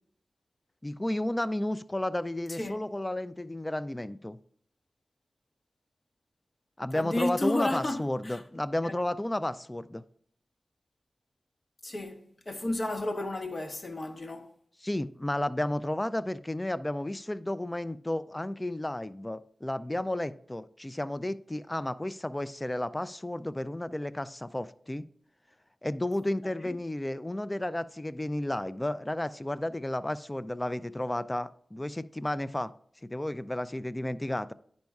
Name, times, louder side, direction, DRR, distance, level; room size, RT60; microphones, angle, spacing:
voice 1, 0.8-4.4 6.8-10.0 14.8-25.0 25.8-32.7 33.0-34.5, left 1 dB, 20° left, 0.3 m, -32 dB
voice 2, 6.9-8.4 8.8-8.9 11.8-14.5, left 2 dB, 45° left, 0.9 m, -32 dB
10.5 x 5.2 x 2.3 m
wide cardioid pair, 60°, 0 cm